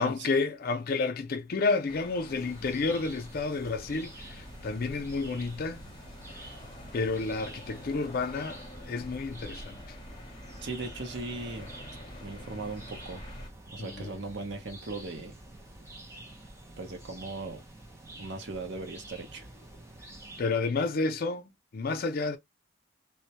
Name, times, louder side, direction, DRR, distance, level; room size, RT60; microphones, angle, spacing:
voice 1, 0.0-5.8 6.3-6.5 6.9-10.0 13.8-14.2 20.4-22.4, left 3 dB, 55° left, 0.4 m, -31 dB
sound 1, 1.9-13.5, left 1 dB, 25° left, 0.8 m, -47 dB
sound 2, 2.3-20.4, right 1 dB, 15° right, 0.6 m, -49 dB
voice 2, 10.6-11.7 12.2-13.2 13.7-15.3 16.8-17.6 18.2-19.5, right 3 dB, 65° right, 0.7 m, -38 dB
2.2 x 2.1 x 2.7 m
head